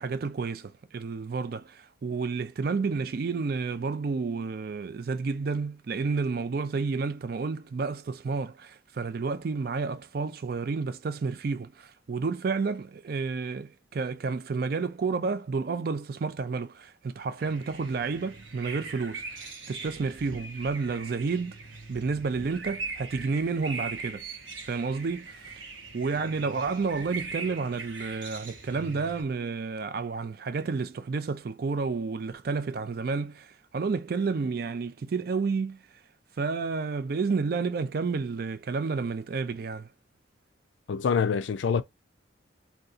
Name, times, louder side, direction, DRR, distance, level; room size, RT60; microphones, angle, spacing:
voice 1, 0.0-21.6 21.9-24.2 24.6-25.6 25.9-35.8 36.4-39.9, right 4 dB, 50° right, 0.4 m, -30 dB
sound 1, 17.4-29.2, right 3 dB, 90° right, 1.0 m, -41 dB
voice 2, 40.9-41.8, left 6 dB, 75° left, 0.4 m, -25 dB
2.7 x 2.3 x 3.7 m
head